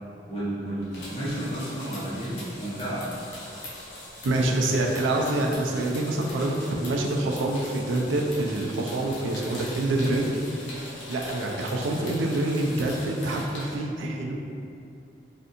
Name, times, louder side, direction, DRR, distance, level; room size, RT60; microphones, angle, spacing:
voice 1, 0.3-3.1, right 1 dB, 30° left, -10 dB, 0.8 m, -32 dB
sound 1, 0.8-13.7, left 1 dB, 70° left, 0.6 m, -41 dB
voice 2, 4.2-10.7 11.1-14.4, right 2 dB, 90° right, 1 dB, 0.3 m, -26 dB
2.5 x 2.5 x 2.6 m, 2.5 s
head